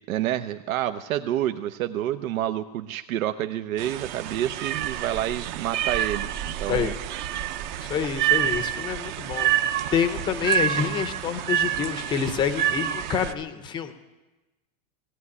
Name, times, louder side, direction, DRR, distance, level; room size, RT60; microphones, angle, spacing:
voice 1, 0.1-6.3 6.6-6.9, right 12 dB, 90° right, 9 dB, 1.0 m, -28 dB
sound 1, 3.8-13.3, right 11 dB, 35° right, 0.8 m, -28 dB
voice 2, 7.8-13.9, left 7 dB, 10° left, 10 dB, 0.6 m, -27 dB
18.0 x 17.0 x 9.7 m, 1.1 s
supercardioid pair, 180°, 40 cm